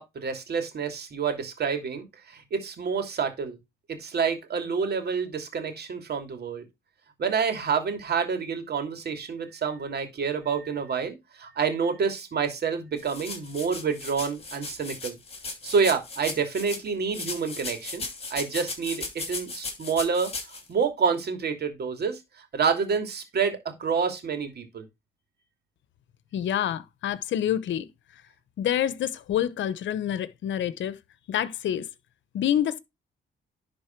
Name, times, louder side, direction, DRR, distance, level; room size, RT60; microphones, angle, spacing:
voice 1, 0.0-3.6 3.9-6.6 7.2-15.2 15.6-24.9, right 6 dB, 55° right, 2.8 m, -28 dB
sound 1, 13.0-16.8 17.1-20.6, left 3 dB, 30° left, 2.8 m, -36 dB
voice 2, 26.3-27.9 28.6-31.0 31.3-31.8 32.3-32.8, left 10 dB, 70° left, 0.9 m, -27 dB
11.0 x 4.1 x 4.5 m
cardioid pair, 90°, 20 cm